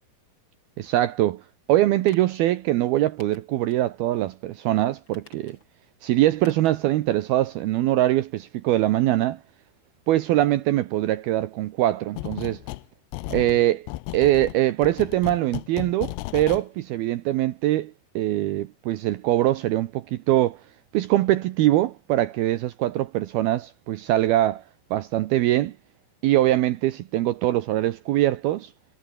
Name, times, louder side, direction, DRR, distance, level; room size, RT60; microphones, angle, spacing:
voice 1, 0.8-1.4 1.7-5.6 6.0-9.4 10.1-12.6 13.3-13.9 14.1-20.6 20.9-24.6 24.9-25.7 26.2-28.7, right 14 dB, 80° right, 2.2 m, -23 dB
sound 1, 2.0-2.4 3.2-3.8 4.2-4.3 5.0-5.8 6.4-6.8 7.1-7.2, left 2 dB, 20° left, 8.3 m, -53 dB
sound 2, 12.2-12.9 13.1-16.6, left 19 dB, 80° left, 2.5 m, -34 dB
omnidirectional pair, 5.7 m